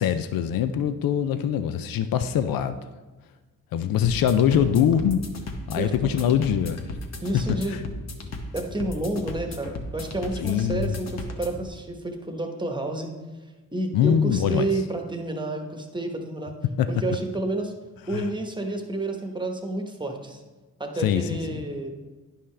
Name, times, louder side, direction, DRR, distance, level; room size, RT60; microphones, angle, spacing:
voice 1, 0.0-2.8 3.7-5.2 5.7-6.8 7.7-7.8 10.4-10.9 13.9-14.7 16.8-16.9 18.1-18.3 21.0-21.6, left 9 dB, 85° left, 10 dB, 0.5 m, -23 dB
sound 1, 4.0-11.7, left 2 dB, 50° left, 1.0 m, -36 dB
voice 2, 7.2-7.8 8.5-13.1 13.7-16.5 16.9-17.7 18.1-20.4 20.8-21.9, right 2 dB, 15° right, 3 dB, 1.0 m, -30 dB
10.0 x 5.5 x 3.3 m, 1.2 s
cardioid pair, 80°, 34 cm